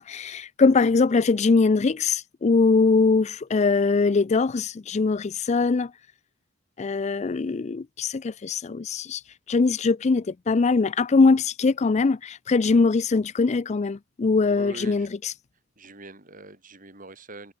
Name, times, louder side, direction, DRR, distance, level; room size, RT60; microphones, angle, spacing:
voice 1, 0.0-5.9 6.8-9.2 9.5-15.3, left 4 dB, 35° left, 0.4 m, -22 dB
voice 2, 14.5-15.1 15.8-17.5, right 2 dB, 45° right, 6.1 m, -43 dB
head